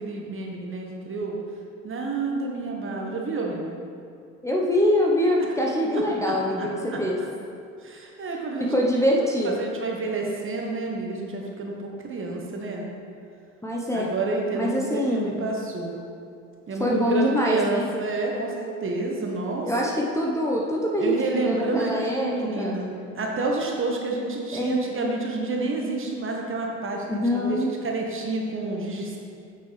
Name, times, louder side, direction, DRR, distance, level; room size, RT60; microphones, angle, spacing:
voice 1, 0.0-1.4 1.8-3.8 5.4-5.5 5.9-7.3 7.8-8.7 9.4-12.9 13.9-16.0 16.7-19.7 21.0-29.2, right 3 dB, 30° right, 0 dB, 1.3 m, -29 dB
voice 2, 4.4-7.2 8.6-9.7 13.6-14.1 14.5-15.4 16.8-17.8 19.6-22.8 24.5-24.9 27.1-27.7, equal, 5° left, -3 dB, 0.9 m, -24 dB
8.3 x 6.1 x 3.3 m, 2.4 s
hypercardioid pair, 60°, 39 cm